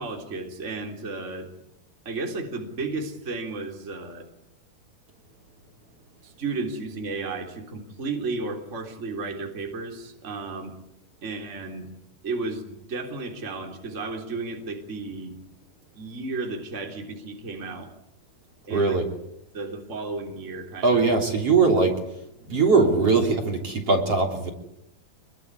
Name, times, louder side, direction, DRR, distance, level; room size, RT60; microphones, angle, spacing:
voice 1, 0.0-1.5 2.1-4.3 6.2-10.7 11.2-11.9 12.2-15.3 15.9-17.9 18.7-19.0 19.5-21.0, right 3 dB, 20° right, 1 dB, 3.4 m, -33 dB
voice 2, 18.7-19.0 20.8-21.9 22.5-24.5, right 4 dB, 40° right, 1 dB, 4.1 m, -20 dB
27.0 x 22.5 x 9.6 m, 0.83 s
omnidirectional pair, 4.5 m